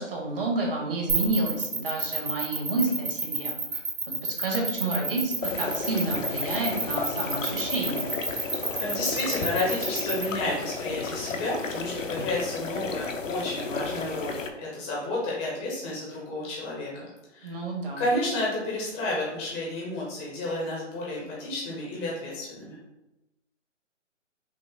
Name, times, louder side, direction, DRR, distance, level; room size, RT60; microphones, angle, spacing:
voice 1, 0.0-3.8 4.2-8.1 17.4-18.0, right 2 dB, 50° right, 0 dB, 1.3 m, -30 dB
sound 1, 1.1-10.2, right 4 dB, 65° right, 1.4 m, -29 dB
sound 2, 5.4-14.5, left 4 dB, 90° left, 0.7 m, -33 dB
voice 2, 8.8-17.6 18.0-22.8, left 2 dB, 10° left, -5 dB, 0.6 m, -31 dB
5.8 x 2.0 x 3.8 m, 0.99 s
figure-of-eight pair, 145°, 37 cm